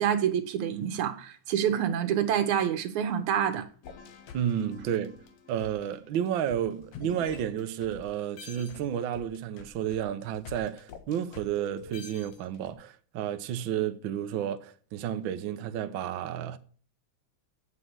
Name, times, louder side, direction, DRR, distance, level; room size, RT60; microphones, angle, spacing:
voice 1, 0.0-3.7, right 9 dB, 90° right, 2.5 m, -27 dB
sound 1, 3.8-8.0 8.4-12.7, left 4 dB, 65° left, 2.4 m, -46 dB
voice 2, 4.3-5.2 5.5-16.6, right 10 dB, 75° right, 1.1 m, -31 dB
8.7 x 7.6 x 8.1 m
omnidirectional pair, 3.3 m